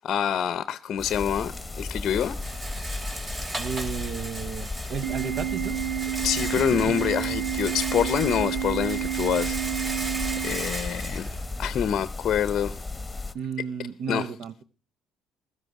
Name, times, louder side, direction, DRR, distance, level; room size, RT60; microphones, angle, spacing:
voice 1, 0.0-2.4 6.0-10.0 10.4-11.3 11.6-12.8 14.1-14.3, left 9 dB, 60° left, 0.6 m, -26 dB
sound 1, 1.0-13.3, left 3 dB, 15° left, 1.2 m, -35 dB
Rattle, 1.0-12.1, right 1 dB, 30° right, 2.5 m, -37 dB
voice 2, 3.6-5.8 6.5-7.0 13.3-14.6, right 7 dB, 65° right, 0.9 m, -33 dB
Organ, 5.0-11.0, right 13 dB, 85° right, 1.7 m, -30 dB
16.0 x 13.0 x 4.7 m
hypercardioid pair, 60°, 0 cm